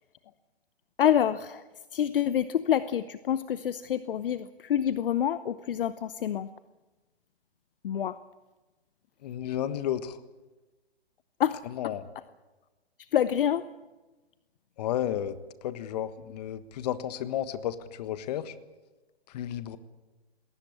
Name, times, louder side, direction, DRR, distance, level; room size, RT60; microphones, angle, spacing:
voice 1, 1.0-1.6 1.9-6.5 7.8-8.2 11.4-11.6 13.0-13.7, left 10 dB, 55° left, 14 dB, 0.8 m, -27 dB
voice 2, 9.2-10.2 11.7-12.0 14.8-18.5 19.3-19.8, left 11 dB, 40° left, 12 dB, 1.4 m, -32 dB
20.5 x 18.0 x 8.6 m, 1.2 s
hypercardioid pair, 145°, 32 cm